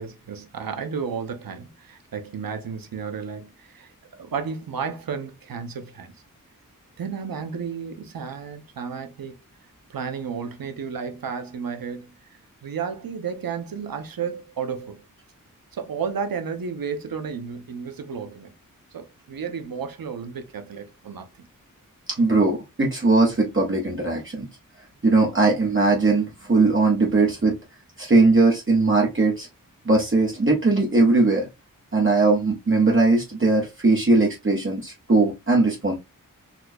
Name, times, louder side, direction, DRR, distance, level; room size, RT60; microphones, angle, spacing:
voice 1, 0.0-6.1 7.0-9.3 9.9-15.0 15.7-18.5 18.9-21.5, right 6 dB, 85° right, 0.6 m, -32 dB
voice 2, 22.2-24.5 25.0-27.6 28.0-29.5 29.8-31.5 31.9-36.0, right 3 dB, 35° right, 0.9 m, -19 dB
4.1 x 2.3 x 2.6 m
wide cardioid pair, 75°, 34 cm